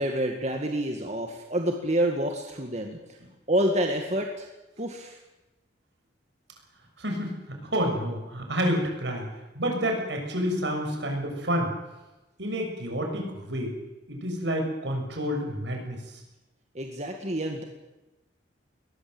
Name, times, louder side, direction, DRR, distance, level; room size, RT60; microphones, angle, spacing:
voice 1, 0.0-3.2 3.5-4.5 4.8-5.2 16.7-17.6, right 1 dB, 35° right, 3 dB, 2.1 m, -28 dB
voice 2, 7.0-9.3 9.5-11.7 12.4-13.8 14.1-16.0, equal, 70° right, 3 dB, 6.7 m, -29 dB
21.0 x 21.0 x 8.0 m, 1.0 s
head